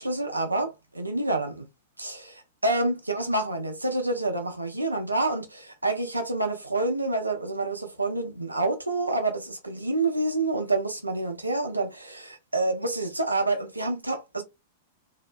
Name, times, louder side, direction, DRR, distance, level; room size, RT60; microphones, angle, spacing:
voice 1, 0.0-1.7 2.0-14.4, right 2 dB, 85° right, 0.5 m, -28 dB
2.7 x 2.1 x 2.3 m
figure-of-eight pair, 95°, 0 cm